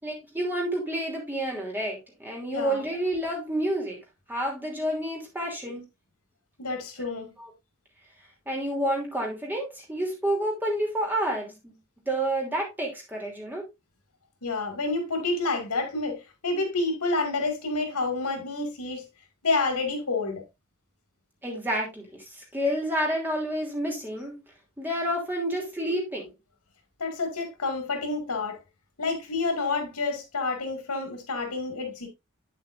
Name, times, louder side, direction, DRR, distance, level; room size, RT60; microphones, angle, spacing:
voice 1, 0.0-4.0 4.3-5.9 7.4-7.5 8.5-11.7 12.1-13.6 21.4-24.3 24.8-26.3, right 1 dB, 10° right, 3.0 m, -29 dB
voice 2, 2.5-2.8 6.6-7.3 14.4-19.1 19.4-20.4 27.0-28.6 29.0-32.1, left 3 dB, 85° left, 2.3 m, -29 dB
8.5 x 7.5 x 2.6 m
head